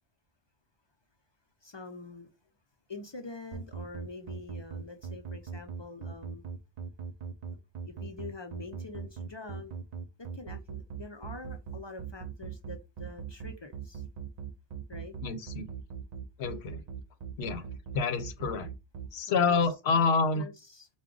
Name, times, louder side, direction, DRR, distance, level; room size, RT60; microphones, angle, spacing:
voice 1, 1.6-2.3 2.9-6.5 7.5-9.7 10.2-14.0 14.9-15.2 19.3-19.6 19.9-20.1 20.3-20.9, left 3 dB, 45° left, 0.3 m, -45 dB
sound 1, 3.5-19.1, right 7 dB, 50° right, 0.5 m, -39 dB
voice 2, 15.2-15.7 16.4-16.8 17.4-17.7 17.9-18.7 19.1-20.5, left 4 dB, 75° left, 0.8 m, -28 dB
4.7 x 2.2 x 3.7 m
omnidirectional pair, 1.1 m